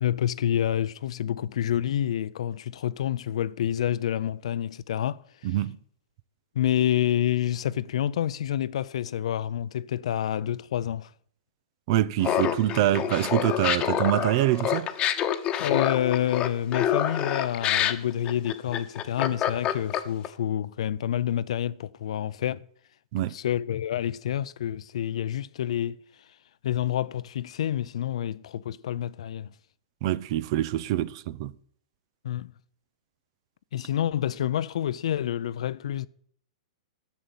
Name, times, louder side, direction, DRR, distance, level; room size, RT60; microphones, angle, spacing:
voice 1, 0.0-5.6 6.5-11.1 15.6-22.6 23.3-26.0 26.6-29.5 32.2-32.5 33.7-36.1, left 11 dB, 70° left, 0.5 m, -28 dB
voice 2, 5.4-5.8 11.9-14.9 23.1-23.4 30.0-31.5, right 14 dB, 50° right, 0.6 m, -25 dB
Laughter, 12.2-20.3, left 10 dB, 30° left, 1.1 m, -27 dB
11.5 x 7.0 x 8.1 m
hypercardioid pair, 130°, 3 cm